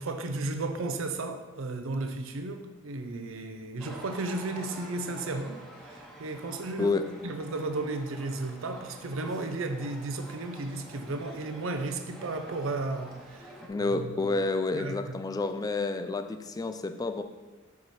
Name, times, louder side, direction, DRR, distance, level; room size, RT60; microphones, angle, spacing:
voice 1, 0.0-6.9 7.2-13.5 13.8-14.3 14.7-15.3, right 2 dB, 75° right, 0.6 m, -34 dB
sound 1, 3.8-13.7, equal, ahead, 1.0 m, -48 dB
voice 2, 13.7-17.2, left 3 dB, 20° left, 0.3 m, -29 dB
6.4 x 4.7 x 4.1 m
head